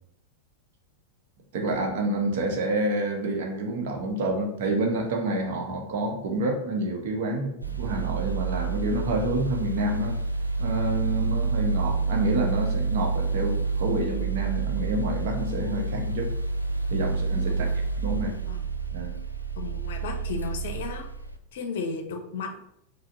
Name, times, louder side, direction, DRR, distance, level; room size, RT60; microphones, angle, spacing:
voice 1, 1.5-10.2 10.6-16.3 16.9-17.7 18.0-18.3 18.9-19.2, right 2 dB, 55° right, 2 dB, 0.7 m, -28 dB
sound 1, 7.6-21.4, right 4 dB, 85° right, 0.3 m, -28 dB
voice 2, 18.3-18.7 19.6-21.0 21.5-22.6, left 4 dB, 55° left, 5 dB, 0.5 m, -34 dB
5.0 x 2.0 x 2.6 m, 0.76 s
figure-of-eight pair, 90°, 0 cm